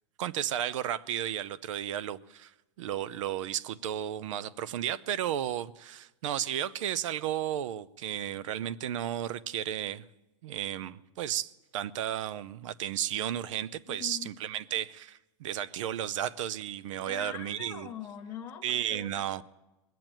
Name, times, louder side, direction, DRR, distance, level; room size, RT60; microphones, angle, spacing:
voice 1, 0.2-2.5 2.8-10.0 10.4-17.9 18.6-19.4, right 11 dB, 70° right, 0.6 m, -33 dB
voice 2, 13.9-14.3 17.0-19.4, left 9 dB, 15° left, 0.8 m, -43 dB
21.0 x 7.6 x 9.0 m
supercardioid pair, 165°, 16 cm